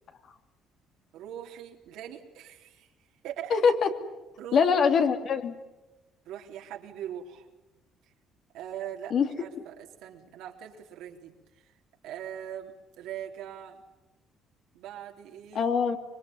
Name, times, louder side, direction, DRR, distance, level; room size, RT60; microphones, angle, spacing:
voice 1, 1.1-2.9 3.2-3.6 4.4-4.8 6.3-7.5 8.5-11.3 11.6-11.7 12.0-13.8 14.7-15.7, right 10 dB, 85° right, 1 dB, 3.8 m, -41 dB
voice 2, 3.5-3.9 4.5-5.6 9.1-9.3 15.5-16.0, left 6 dB, 55° left, 6 dB, 2.7 m, -23 dB
25.5 x 23.5 x 9.6 m, 1.0 s
cardioid pair, 115°, 0 cm